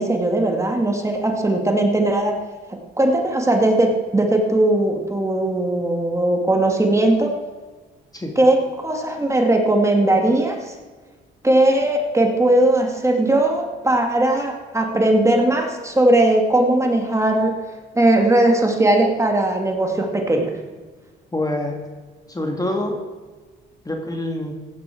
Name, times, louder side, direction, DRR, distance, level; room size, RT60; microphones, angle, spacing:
voice 1, 0.0-2.3 3.0-7.3 8.4-8.6 8.8-10.7 11.4-17.5 18.0-20.5, right 1 dB, 15° right, 2 dB, 2.3 m, -18 dB
voice 2, 21.3-21.8 22.3-23.0 23.8-24.5, left 1 dB, 20° left, 2 dB, 2.0 m, -25 dB
15.5 x 10.5 x 4.6 m, 1.3 s
cardioid pair, 90°, 20 cm